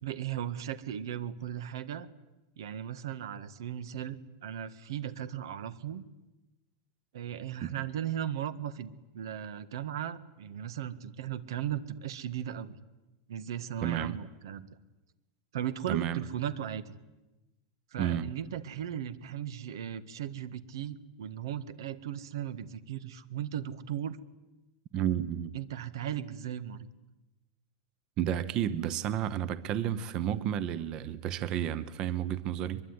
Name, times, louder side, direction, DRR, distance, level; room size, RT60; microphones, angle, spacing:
voice 1, 0.0-2.1 2.6-6.0 7.1-12.8 13.3-14.7 15.5-16.9 17.9-24.2 25.5-26.9, right 10 dB, 85° right, 15 dB, 1.7 m, -37 dB
voice 2, 13.8-14.2 15.9-16.2 18.0-18.3 24.9-25.5 28.2-32.8, right 10 dB, 30° right, 16 dB, 1.0 m, -31 dB
23.5 x 22.5 x 9.8 m, 1.0 s
supercardioid pair, 170°, 2 cm